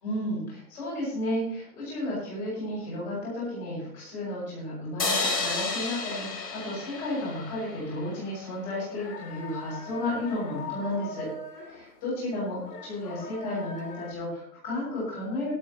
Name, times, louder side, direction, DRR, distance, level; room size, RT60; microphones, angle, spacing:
voice 1, 0.0-11.3 11.6-12.6 12.9-15.5, left 1 dB, 15° left, -7 dB, 6.4 m, -33 dB
sound 1, 5.0-8.3, left 3 dB, 85° left, 5.5 m, -31 dB
sound 2, 8.9-14.1, left 3 dB, 70° left, 3.2 m, -42 dB
21.5 x 8.7 x 3.0 m, 0.66 s
hypercardioid pair, 175°, 49 cm